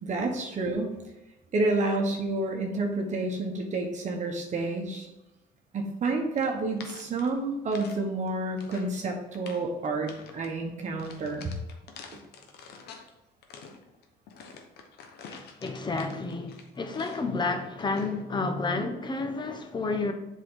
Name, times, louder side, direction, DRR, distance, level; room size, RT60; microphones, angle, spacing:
voice 1, 0.0-0.9 1.5-5.1 5.7-11.5 12.1-12.2, right 2 dB, 45° right, 1.2 m, -29 dB
sound 1, 6.3-8.0 8.3-9.0 9.3-9.7 10.1-10.5 11.0-13.1 13.4-17.4 17.8-18.2, left 5 dB, 70° left, 1.1 m, -48 dB
voice 2, 15.3-20.1, left 3 dB, 25° left, 1.0 m, -31 dB
7.5 x 4.6 x 3.8 m
cardioid pair, 110°, 17 cm